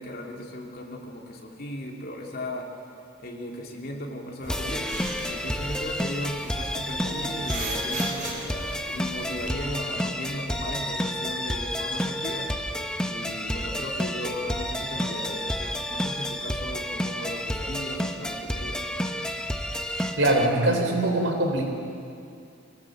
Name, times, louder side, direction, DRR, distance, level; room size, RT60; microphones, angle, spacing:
voice 1, 0.0-2.7 3.2-4.8 5.3-12.8 13.1-18.9, left 1 dB, 50° left, 0 dB, 2.9 m, -36 dB
sound 1, 4.4-9.5, right 2 dB, 40° right, 4.5 m, -38 dB
sound 2, 4.5-20.5, equal, 5° left, 1.0 m, -30 dB
voice 2, 20.2-21.7, right 1 dB, 85° right, 3 dB, 3.9 m, -22 dB
23.5 x 18.0 x 7.9 m, 2.4 s
head